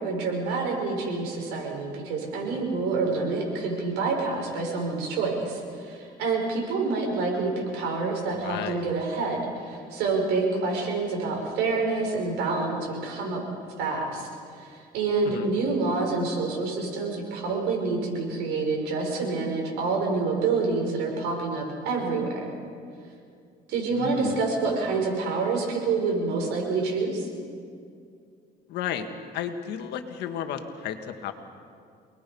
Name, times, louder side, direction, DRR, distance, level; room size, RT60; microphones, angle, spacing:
voice 1, 0.0-13.4 13.8-14.3 14.5-22.5 23.7-27.3, right 3 dB, 90° right, 0 dB, 6.3 m, -27 dB
voice 2, 8.4-8.9 15.2-15.5 23.9-24.4 28.7-29.1 29.3-31.3, left 9 dB, 80° left, 6 dB, 1.8 m, -33 dB
28.0 x 20.0 x 5.5 m, 2.3 s
cardioid pair, 110°, 17 cm